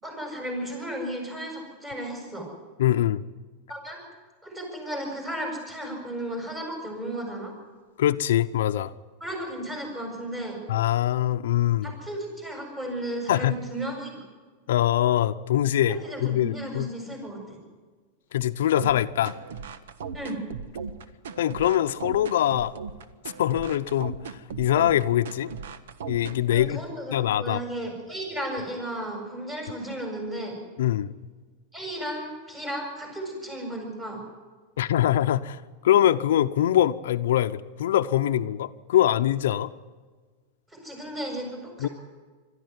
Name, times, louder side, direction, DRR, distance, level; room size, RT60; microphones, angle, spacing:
voice 1, 0.0-2.5 3.7-4.0 4.4-7.5 9.2-10.6 11.8-14.2 15.9-17.6 20.1-20.4 26.5-30.6 31.7-34.2 40.7-41.9, right 1 dB, 15° right, 7.4 m, -34 dB
voice 2, 2.8-3.2 8.0-8.9 10.7-11.9 13.3-13.5 14.7-16.0 16.2-16.9 18.3-19.3 21.4-22.7 23.4-25.5 26.1-26.8 27.1-27.6 30.8-31.1 34.8-39.7 41.8-41.9, left 12 dB, 85° left, 0.7 m, -23 dB
sound 1, 18.8-26.7, right 6 dB, 85° right, 1.3 m, -37 dB
22.0 x 13.5 x 9.5 m
supercardioid pair, 150°, 0 cm